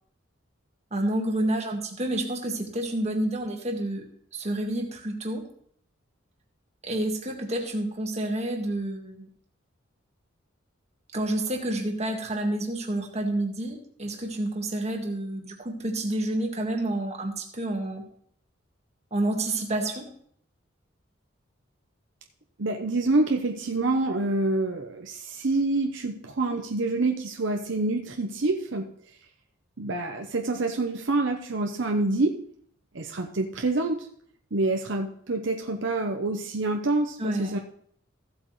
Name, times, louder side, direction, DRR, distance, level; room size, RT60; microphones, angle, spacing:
voice 1, 0.9-4.0 4.3-5.5 6.8-9.3 11.1-18.0 19.1-20.1 37.2-37.6, right 1 dB, 35° right, 2 dB, 1.6 m, -29 dB
voice 2, 22.6-28.9 29.8-32.4 32.9-34.1 34.5-37.6, right 2 dB, 65° right, 3 dB, 0.8 m, -27 dB
15.0 x 7.8 x 3.2 m, 0.62 s
head